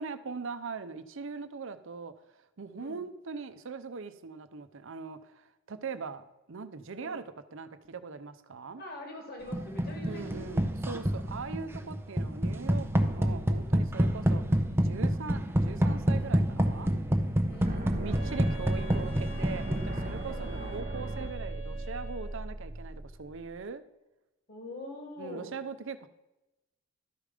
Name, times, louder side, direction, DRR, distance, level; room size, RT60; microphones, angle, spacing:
voice 1, 0.0-7.2 7.5-8.8 10.1-16.9 17.9-23.8 25.2-26.1, right 4 dB, 65° right, 11 dB, 0.7 m, -41 dB
voice 2, 8.8-10.7 17.4-18.3 20.3-20.8 24.5-25.6, left 1 dB, 50° left, 2 dB, 2.1 m, -44 dB
sound 1, 9.5-20.4, equal, 10° right, 0.7 m, -28 dB
sound 2, 17.6-23.6, right 1 dB, 40° right, 1.0 m, -38 dB
Wind instrument woodwind instrument, 18.1-22.6, right 5 dB, 85° left, 1.9 m, -47 dB
12.5 x 5.2 x 4.9 m, 0.97 s
head